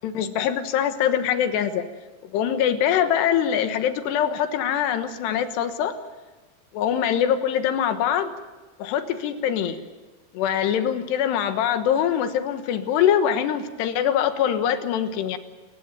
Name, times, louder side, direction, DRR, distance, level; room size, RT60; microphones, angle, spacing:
voice 1, 0.0-1.9 2.3-6.0 6.7-8.3 8.8-9.8 10.3-15.4, left 9 dB, 85° left, 9 dB, 3.5 m, -23 dB
27.5 x 15.0 x 9.2 m, 1.3 s
omnidirectional pair, 4.7 m